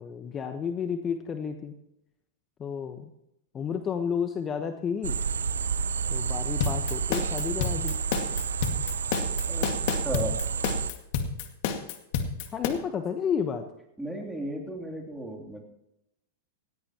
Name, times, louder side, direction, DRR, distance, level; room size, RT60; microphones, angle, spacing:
voice 1, 0.0-1.7 2.6-3.1 3.5-5.2 6.1-8.0 12.5-13.6, left 7 dB, 25° left, 7 dB, 1.1 m, -31 dB
sound 1, 5.0-10.9, right 6 dB, 90° right, 0.6 m, -30 dB
sound 2, 6.6-12.7, left 7 dB, 55° left, 2.0 m, -29 dB
voice 2, 9.5-10.4 14.0-15.6, right 1 dB, 5° right, 0 dB, 3.2 m, -35 dB
17.5 x 17.0 x 3.0 m, 0.84 s
hypercardioid pair, 110°, 0 cm